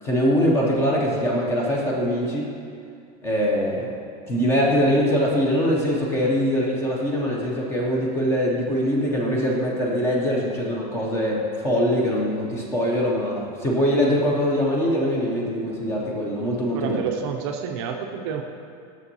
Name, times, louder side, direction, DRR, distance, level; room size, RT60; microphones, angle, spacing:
voice 1, 0.0-2.5 3.2-3.9 4.3-17.1, equal, 10° left, -2 dB, 0.5 m, -23 dB
voice 2, 16.7-18.4, right 7 dB, 45° right, 3 dB, 0.4 m, -29 dB
7.0 x 6.0 x 2.7 m, 2.3 s
supercardioid pair, 175°, 20 cm